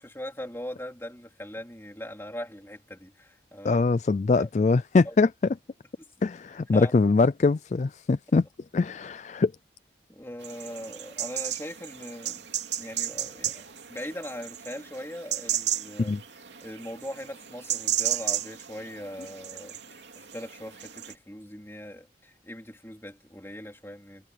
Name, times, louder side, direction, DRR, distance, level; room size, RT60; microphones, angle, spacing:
voice 1, 0.0-3.8 4.4-4.5 5.1-5.2 6.0-6.1 6.7-6.9 10.1-12.5 12.8-16.2 16.6-24.3, equal, 15° left, 3.7 m, -40 dB
voice 2, 3.6-5.3 6.2-8.5 8.7-9.5 16.0-16.2, left 3 dB, 40° left, 0.3 m, -23 dB
sound 1, 10.4-21.1, right 11 dB, 85° right, 2.9 m, -34 dB
head